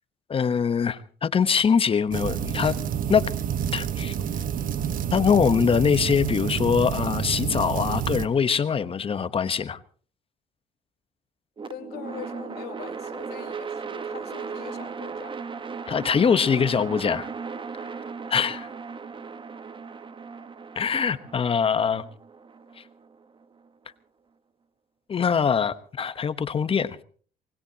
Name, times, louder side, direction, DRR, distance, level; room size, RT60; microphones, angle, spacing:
voice 1, 0.3-2.8 3.1-3.3 3.7-4.1 5.1-9.8 15.9-17.3 18.3-18.7 20.8-22.0 25.1-27.0, left 6 dB, 35° left, 1.1 m, -23 dB
sound 1, 2.1-8.3, right 8 dB, 55° right, 1.2 m, -28 dB
sound 2, 11.6-23.7, right 5 dB, 30° right, 1.2 m, -37 dB
voice 2, 11.7-15.4, left 11 dB, 70° left, 2.7 m, -42 dB
25.5 x 20.0 x 2.9 m
cardioid pair, 110°, 17 cm